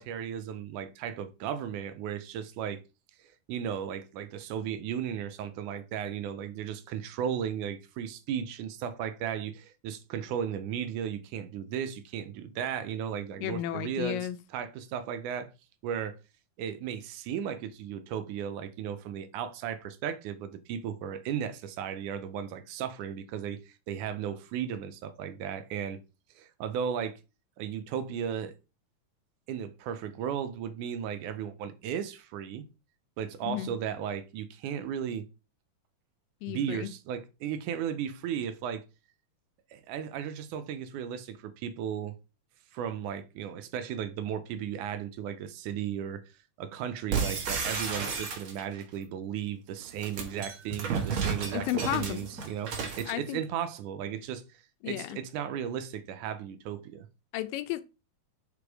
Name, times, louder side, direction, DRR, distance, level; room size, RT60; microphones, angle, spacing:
voice 1, 0.0-2.8 3.2-15.5 15.8-16.2 16.6-26.0 26.4-27.2 27.6-28.5 29.5-32.7 33.2-35.2 36.5-38.8 39.7-42.2 42.7-46.2 46.6-57.1, right 8 dB, 80° right, 2.0 m, -35 dB
voice 2, 13.4-14.4 33.4-33.7 36.4-36.9 51.5-52.3 53.1-53.4 54.8-55.2 57.3-57.8, left 14 dB, 85° left, 2.3 m, -33 dB
sound 1, 47.1-48.8 49.8-53.1, right 5 dB, 50° right, 1.7 m, -32 dB
5.2 x 5.1 x 4.8 m
omnidirectional pair, 3.9 m